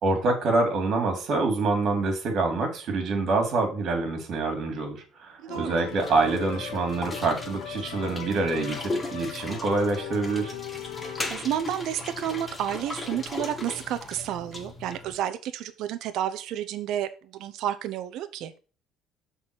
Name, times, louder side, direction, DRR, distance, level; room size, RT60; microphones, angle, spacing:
voice 1, 0.0-10.5, right 3 dB, 55° right, 2.6 m, -26 dB
voice 2, 5.4-5.8 11.0-18.5, right 11 dB, 70° right, 0.8 m, -31 dB
sound 1, 5.5-11.3, left 9 dB, 80° left, 1.1 m, -39 dB
sound 2, 5.9-15.1, left 2 dB, 20° left, 1.4 m, -38 dB
6.4 x 4.0 x 6.2 m
cardioid pair, 125°, 0 cm